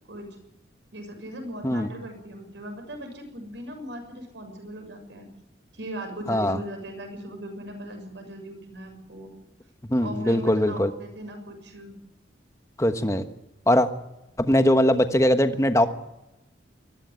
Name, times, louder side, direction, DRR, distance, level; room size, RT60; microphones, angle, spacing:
voice 1, 0.9-5.3 5.7-9.3 10.0-12.0, right 1 dB, 75° right, 5 dB, 6.6 m, -38 dB
voice 2, 9.9-10.9 12.8-13.2 13.7-13.9 14.4-15.9, left 1 dB, 15° left, 8 dB, 1.2 m, -21 dB
21.0 x 14.5 x 9.5 m, 0.95 s
head